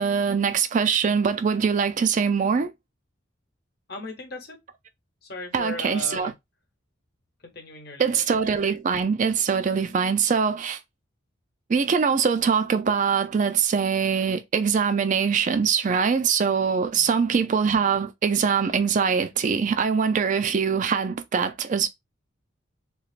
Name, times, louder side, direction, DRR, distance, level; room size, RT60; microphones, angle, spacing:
voice 1, 0.0-2.7 5.5-6.3 8.0-10.8 11.7-21.9, right 6 dB, 40° right, 0.3 m, -23 dB
voice 2, 3.9-4.6 5.2-6.3 7.4-8.1 16.9-17.2, left 2 dB, 50° left, 1.0 m, -37 dB
3.1 x 2.9 x 2.4 m
head